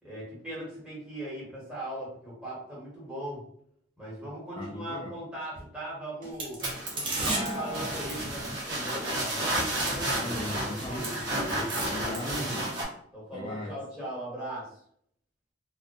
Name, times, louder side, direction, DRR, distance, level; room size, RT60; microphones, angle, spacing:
voice 1, 0.0-3.4 4.0-6.6 6.9-11.1 13.1-14.8, right 1 dB, 5° right, 1.3 m, -39 dB
voice 2, 4.6-5.1 10.2-11.2 11.8-13.0 13.3-13.7, left 1 dB, 25° left, 0.3 m, -38 dB
sound 1, 5.5-5.7 6.2-6.3 7.2-7.7 8.3-8.4 8.9-9.1 9.6-9.7 10.0-10.4 10.8-10.9, left 1 dB, 50° right, 1.0 m, -48 dB
sound 2, 6.3-9.0 9.6-9.7 10.0-11.9, right 2 dB, 30° right, 0.5 m, -36 dB
sound 3, 6.6-12.8, right 1 dB, 75° right, 0.8 m, -32 dB
2.4 x 2.2 x 2.5 m
head